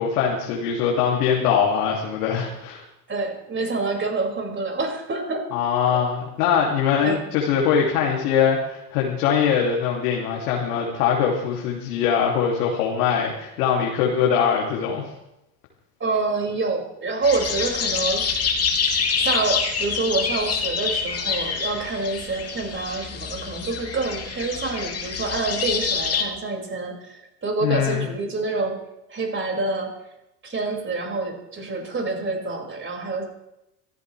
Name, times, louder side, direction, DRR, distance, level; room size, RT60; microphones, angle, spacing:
voice 1, 0.0-2.8 5.5-15.0 27.6-28.1, left 7 dB, 65° left, -1 dB, 3.1 m, -22 dB
voice 2, 3.1-5.4 7.0-7.2 16.0-18.2 19.2-28.8 29.1-29.9 30.4-33.2, right 3 dB, 25° right, 1 dB, 6.3 m, -27 dB
sound 1, 17.2-26.2, left 5 dB, 30° left, 3.1 m, -26 dB
26.0 x 15.0 x 3.5 m, 0.90 s
figure-of-eight pair, 75°, 48 cm